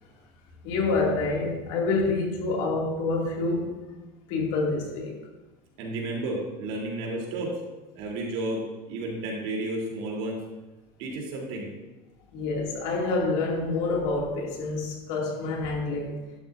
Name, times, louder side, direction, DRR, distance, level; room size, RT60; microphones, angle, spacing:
voice 1, 0.6-3.8 4.3-5.1 12.3-16.2, left 3 dB, 60° left, -1 dB, 2.4 m, -27 dB
voice 2, 5.8-7.6 7.9-10.4 11.0-11.7, right 2 dB, 60° right, -2 dB, 3.2 m, -32 dB
13.0 x 11.5 x 2.6 m, 1.1 s
cardioid pair, 180°, 13 cm